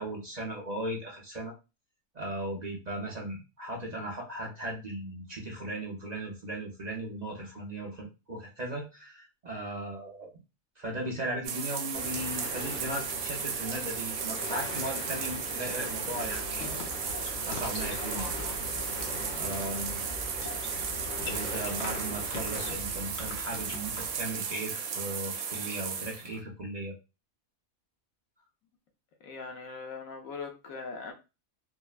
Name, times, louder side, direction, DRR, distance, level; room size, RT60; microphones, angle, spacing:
voice 1, 0.0-1.5 2.1-10.3 10.8-16.8 17.2-18.3 19.3-20.0 20.7-20.9 21.2-27.0, right 1 dB, 45° right, 0.6 m, -37 dB
sound 1, 11.4-26.4, right 6 dB, 75° right, 1.0 m, -35 dB
sound 2, 11.9-22.7, left 2 dB, 35° left, 1.0 m, -41 dB
sound 3, 16.2-24.5, left 2 dB, 60° left, 0.8 m, -42 dB
voice 2, 29.2-31.1, left 4 dB, 75° left, 1.1 m, -41 dB
3.5 x 2.1 x 2.3 m
omnidirectional pair, 1.5 m